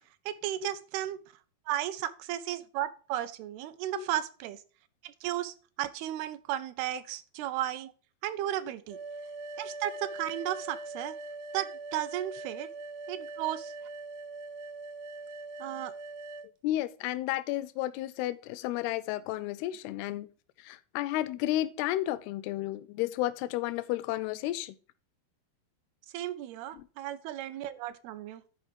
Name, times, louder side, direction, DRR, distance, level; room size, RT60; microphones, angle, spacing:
voice 1, 0.3-1.2 1.7-4.6 5.0-7.9 8.2-9.0 9.6-11.2 11.5-12.7 13.1-13.7 15.6-15.9 26.1-28.4, right 13 dB, 85° right, 2.6 m, -34 dB
sound 1, 8.9-16.5, right 3 dB, 70° right, 2.0 m, -42 dB
voice 2, 16.6-20.3 20.6-24.8 26.7-26.9, left 15 dB, 90° left, 2.5 m, -32 dB
11.0 x 4.7 x 5.1 m
omnidirectional pair, 4.4 m